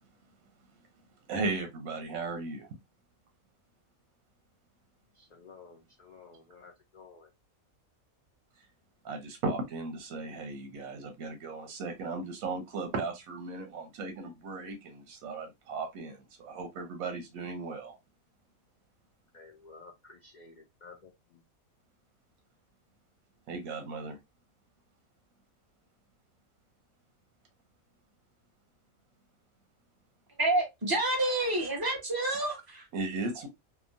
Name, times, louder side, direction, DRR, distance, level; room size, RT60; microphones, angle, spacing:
voice 1, 1.3-2.7 9.0-18.0 23.5-24.2 32.9-33.5, right 3 dB, 85° right, 1.1 m, -36 dB
voice 2, 5.3-7.3 19.3-21.1, left 4 dB, 90° left, 0.4 m, -53 dB
voice 3, 30.4-32.8, right 2 dB, 20° right, 0.9 m, -28 dB
2.9 x 2.2 x 2.5 m
omnidirectional pair, 1.4 m